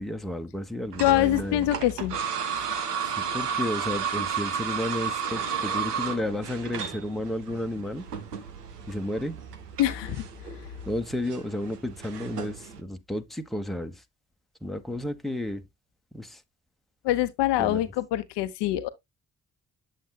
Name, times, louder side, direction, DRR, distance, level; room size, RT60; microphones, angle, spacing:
voice 1, 0.0-1.7 3.0-8.0 8.9-9.4 10.8-13.9 14.6-15.6 16.1-16.4 17.6-17.9, left 1 dB, ahead, 1.2 m, -32 dB
sound 1, 0.9-12.8, right 7 dB, 90° right, 0.9 m, -33 dB
voice 2, 1.0-2.2 2.6-2.7 9.8-10.2 17.0-18.9, left 14 dB, 65° left, 0.8 m, -24 dB
8.3 x 7.7 x 2.3 m
figure-of-eight pair, 40°, 46 cm